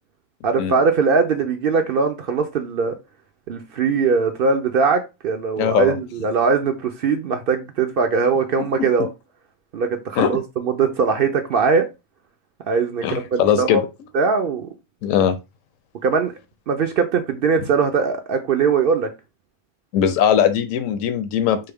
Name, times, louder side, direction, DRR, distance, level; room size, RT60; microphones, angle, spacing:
voice 1, 0.4-3.0 3.5-9.1 9.7-11.9 12.7-13.8 14.1-14.7 16.0-16.3 16.7-19.1, right 5 dB, 65° right, 0.6 m, -20 dB
voice 2, 5.6-6.0 10.2-10.3 13.0-13.8 15.0-15.4 19.9-21.7, left 9 dB, 85° left, 1.0 m, -19 dB
3.9 x 2.2 x 3.4 m
omnidirectional pair, 1.4 m